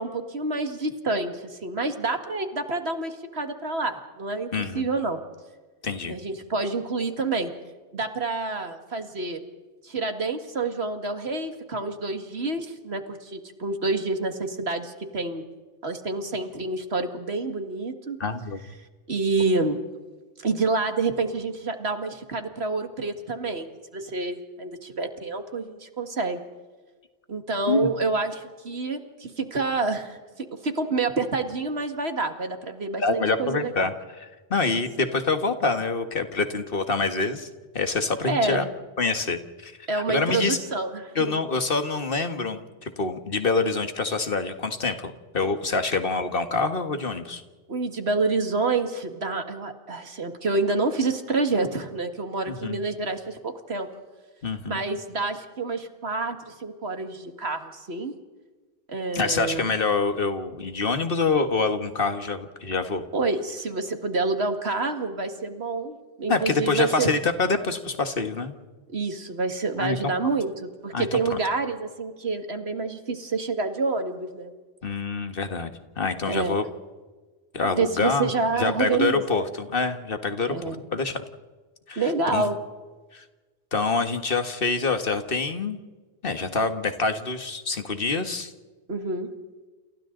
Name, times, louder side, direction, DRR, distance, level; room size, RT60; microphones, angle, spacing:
voice 1, 0.0-5.2 6.1-7.5 7.9-9.4 9.8-15.4 15.8-18.2 19.1-19.8 20.4-23.7 23.9-26.4 27.3-33.9 38.3-38.7 39.9-41.3 47.7-53.9 54.7-58.1 58.9-59.7 63.1-67.1 68.9-74.5 76.3-76.6 77.7-79.5 80.5-80.8 82.0-82.6 88.9-89.3, right 3 dB, 75° right, 6 dB, 2.3 m, -28 dB
voice 2, 4.5-4.9 5.8-6.2 18.2-18.6 27.7-27.9 33.0-37.5 37.7-38.7 39.0-40.6 41.2-47.4 52.5-52.8 54.4-54.8 59.1-63.0 66.3-68.5 69.8-70.3 70.9-71.4 74.8-75.7 76.0-76.6 77.5-78.3 78.6-81.2 81.9-82.5 83.1-83.2 83.7-85.8 86.2-88.5, left 4 dB, 60° left, 8 dB, 1.9 m, -26 dB
29.5 x 28.0 x 4.0 m, 1.3 s
omnidirectional pair, 1.1 m